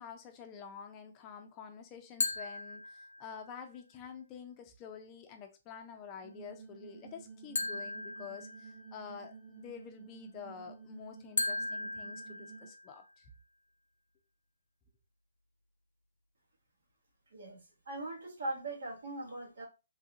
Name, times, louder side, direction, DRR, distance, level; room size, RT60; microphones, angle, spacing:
voice 1, 0.0-13.3, left 7 dB, 25° left, 0.5 m, -48 dB
sound 1, 2.2-3.5 7.5-9.1 11.4-13.1, left 3 dB, 85° left, 0.6 m, -37 dB
sound 2, 6.2-12.7, right 5 dB, 45° right, 1.2 m, -52 dB
voice 2, 17.3-19.7, right 2 dB, 75° right, 1.3 m, -40 dB
3.2 x 2.4 x 2.8 m
hypercardioid pair, 155°, 0 cm